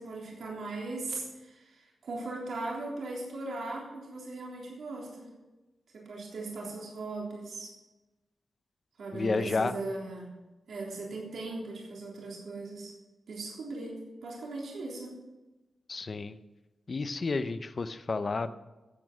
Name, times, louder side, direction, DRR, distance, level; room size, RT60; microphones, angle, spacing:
voice 1, 0.0-5.3 5.9-7.7 9.0-10.3 10.7-12.9 13.3-15.1, right 2 dB, 75° right, -3 dB, 3.5 m, -38 dB
voice 2, 9.1-9.8 15.9-16.4 16.9-18.5, left 3 dB, 35° left, 11 dB, 0.6 m, -31 dB
15.5 x 8.5 x 6.1 m, 1.1 s
wide cardioid pair, 170°, 0 cm